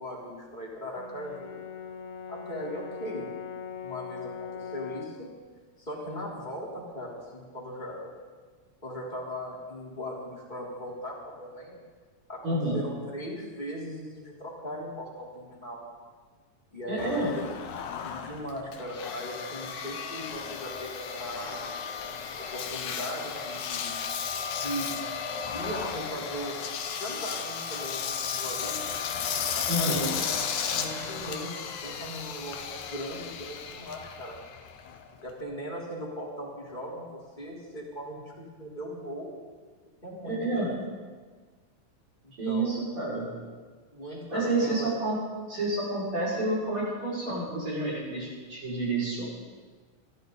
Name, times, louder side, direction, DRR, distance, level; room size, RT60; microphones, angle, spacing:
voice 1, 0.0-1.6 2.3-3.3 3.8-5.3 5.8-8.1 8.8-11.8 12.3-15.8 16.7-17.5 18.0-21.6 22.4-23.9 24.6-24.9 25.5-26.6 27.0-28.9 29.5-30.3 30.6-34.4 35.1-39.3 40.0-40.8 42.2-42.8 43.9-44.9, equal, 15° left, -4 dB, 3.6 m, -38 dB
Brass instrument, 1.0-5.3, left 7 dB, 70° left, 2.4 m, -40 dB
voice 2, 12.4-12.8 16.9-17.3 29.7-30.1 40.2-40.7 42.4-43.3 44.3-45.2 45.5-49.2, right 2 dB, 45° right, -8 dB, 6.6 m, -29 dB
Engine, 17.0-35.4, left 7 dB, 90° left, 2.4 m, -34 dB
23.5 x 14.0 x 4.0 m, 1.5 s
omnidirectional pair, 3.3 m